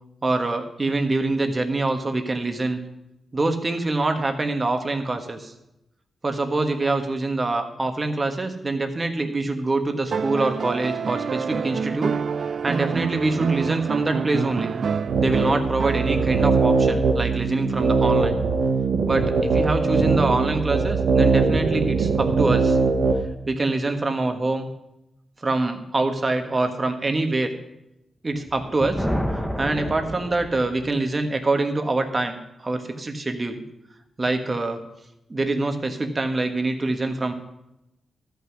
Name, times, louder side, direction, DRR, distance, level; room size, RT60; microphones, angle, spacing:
voice 1, 0.2-2.8 3.3-5.5 6.2-12.1 12.6-14.7 15.2-18.4 19.1-22.8 23.5-24.7 25.4-27.5 28.2-29.1 29.6-33.6 34.2-34.8 35.3-37.3, right 2 dB, 30° right, 5 dB, 1.4 m, -25 dB
sound 1, 10.1-16.5 18.0-18.1, right 6 dB, 60° right, 0.3 m, -27 dB
sound 2, 15.1-23.2, right 4 dB, 85° right, 1.2 m, -21 dB
Thunder, 28.4-31.0, equal, 5° left, 1.2 m, -29 dB
13.5 x 5.9 x 6.4 m, 0.88 s
cardioid pair, 85°, 0 cm